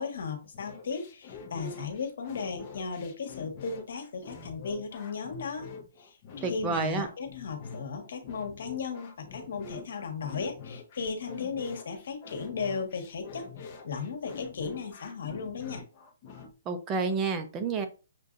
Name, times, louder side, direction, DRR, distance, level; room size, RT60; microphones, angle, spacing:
voice 1, 0.0-5.7 6.0-15.8, left 5 dB, 60° left, 6 dB, 1.3 m, -36 dB
sound 1, 0.5-16.5, left 5 dB, 30° left, 0.9 m, -45 dB
voice 2, 6.4-7.1 16.7-17.9, right 4 dB, 15° right, 7 dB, 0.5 m, -29 dB
6.6 x 2.6 x 2.5 m, 0.33 s
hypercardioid pair, 165°, 0 cm